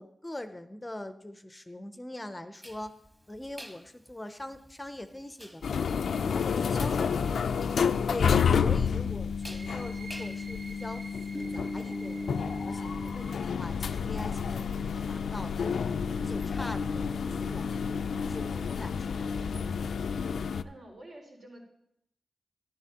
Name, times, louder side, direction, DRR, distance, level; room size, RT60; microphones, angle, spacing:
voice 1, 0.0-2.9 3.3-5.8 6.2-7.3 8.1-15.7 16.2-17.7 18.2-19.7, left 1 dB, 15° left, 10 dB, 0.5 m, -42 dB
sound 1, 2.6-20.2, equal, 10° right, 1.0 m, -47 dB
sound 2, 5.6-20.6, left 6 dB, 90° left, 0.3 m, -30 dB
voice 2, 6.6-7.2 8.9-9.1 17.2-17.9 20.6-21.6, right 1 dB, 80° right, -3 dB, 3.8 m, -49 dB
sound 3, 9.3-16.7, right 2 dB, 55° right, 2.0 m, -50 dB
14.0 x 11.5 x 2.9 m, 0.76 s
wide cardioid pair, 125°, 0 cm